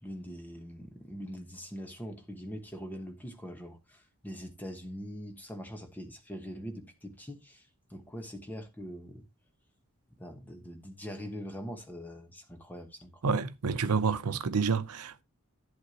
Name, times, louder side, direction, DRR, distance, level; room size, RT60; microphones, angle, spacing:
voice 1, 0.0-9.3 10.2-13.3, equal, 10° left, 1.1 m, -43 dB
voice 2, 13.2-15.2, right 5 dB, 90° right, 0.7 m, -29 dB
11.0 x 8.1 x 2.9 m
head